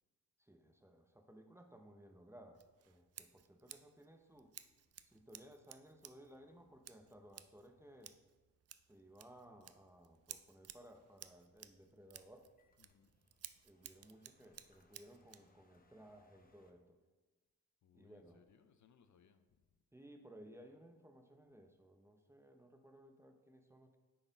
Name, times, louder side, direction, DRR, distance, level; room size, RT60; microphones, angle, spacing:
voice 1, 0.4-4.5 5.0-8.2 8.9-12.5 13.6-17.0 17.9-18.4 19.9-24.0, right 1 dB, 10° right, 4 dB, 0.7 m, -60 dB
Scissors, 2.5-15.5, right 10 dB, 45° right, 0.4 m, -58 dB
sound 1, 11.1-16.7, left 2 dB, 25° left, 0.9 m, -75 dB
voice 2, 12.8-13.1 17.8-19.8, left 7 dB, 60° left, 9 dB, 0.6 m, -69 dB
9.6 x 4.3 x 4.0 m, 1.2 s
cardioid pair, 90°, 34 cm